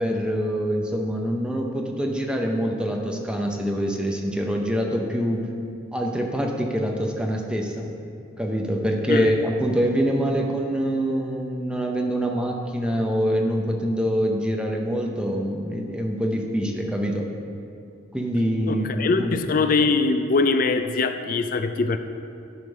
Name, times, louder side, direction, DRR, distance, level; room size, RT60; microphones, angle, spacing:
voice 1, 0.0-5.5 5.9-7.9 8.4-17.3 18.1-19.4, equal, 5° right, 1 dB, 0.7 m, -25 dB
voice 2, 18.7-22.0, left 3 dB, 40° left, 9 dB, 0.3 m, -22 dB
11.0 x 5.1 x 5.4 m, 2.5 s
head